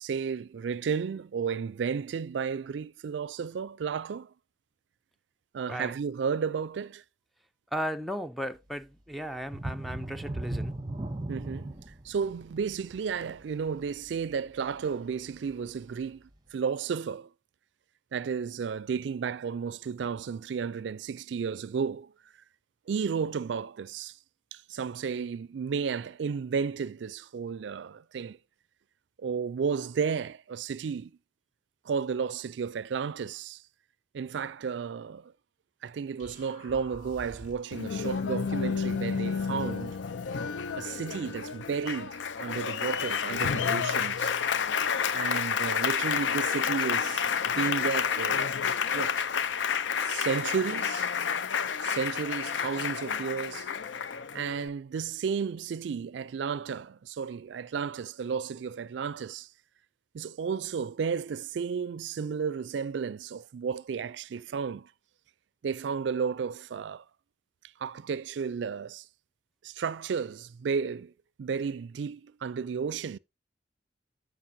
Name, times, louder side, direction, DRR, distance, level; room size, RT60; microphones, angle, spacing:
voice 1, 0.0-4.3 5.5-7.0 11.3-11.8 12.1-16.2 16.5-17.3 18.1-22.1 22.9-24.2 24.5-28.4 29.2-31.1 31.9-33.6 34.1-35.3 35.8-40.0 40.8-44.4 45.1-48.5 48.9-49.3 50.1-51.1 51.8-53.7 54.3-59.5 60.1-64.9 65.6-67.0 67.8-69.0 69.6-71.1 71.4-73.2, right 6 dB, 75° right, 0.4 m, -33 dB
voice 2, 7.7-10.8, equal, ahead, 0.5 m, -35 dB
sound 1, 9.5-14.9 15.4-15.5 16.0-16.1, right 1 dB, 25° right, 1.0 m, -37 dB
sound 2, 36.2-37.8, right 1 dB, 40° left, 6.0 m, -48 dB
Applause, 37.7-54.7, left 7 dB, 80° left, 0.5 m, -30 dB
13.5 x 5.1 x 2.7 m
head